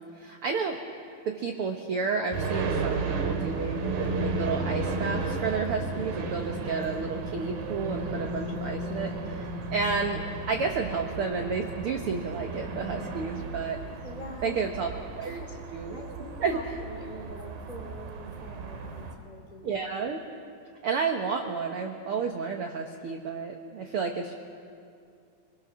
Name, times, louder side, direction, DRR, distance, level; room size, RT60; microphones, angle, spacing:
voice 1, 0.1-0.8 1.2-13.8 14.4-14.9 15.2-15.4 15.7-16.0 16.4-16.6 19.6-20.2 20.8-24.3, right 5 dB, 75° right, 4 dB, 1.3 m, -31 dB
sound 1, 2.3-19.1, right 3 dB, 90° right, 3.4 m, -34 dB
voice 2, 14.0-14.6 15.2-19.9, left 1 dB, 15° left, 0 dB, 2.0 m, -45 dB
26.0 x 20.5 x 6.2 m, 2.4 s
omnidirectional pair, 4.0 m